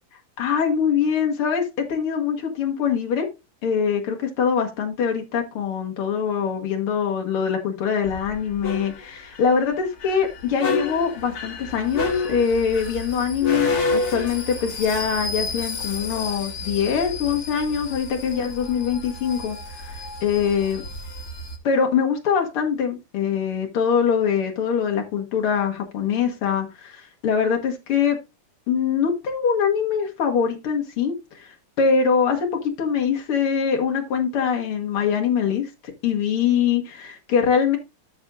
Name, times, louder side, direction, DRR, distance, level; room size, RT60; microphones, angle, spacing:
voice 1, 0.4-3.3 3.6-20.8 21.6-28.2 28.7-35.7 36.0-37.8, left 7 dB, 85° left, 2.4 m, -23 dB
sound 1, 8.1-21.6, left 3 dB, 50° left, 1.8 m, -30 dB
13.0 x 5.9 x 2.5 m
omnidirectional pair, 2.4 m